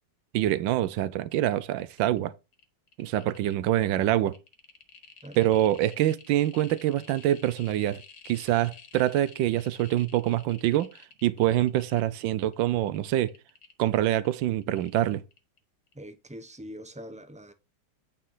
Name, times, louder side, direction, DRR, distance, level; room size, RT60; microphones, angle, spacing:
voice 1, 0.3-2.3 3.0-4.4 5.4-10.9 11.2-13.3 13.8-15.2, right 13 dB, 85° right, 1.4 m, -25 dB
sound 1, 1.5-1.6 1.8-2.2 2.5-15.6 15.9-16.0, left 6 dB, 60° left, 2.0 m, -52 dB
voice 2, 15.9-17.5, equal, 10° right, 0.3 m, -43 dB
9.0 x 4.4 x 5.5 m
omnidirectional pair, 2.0 m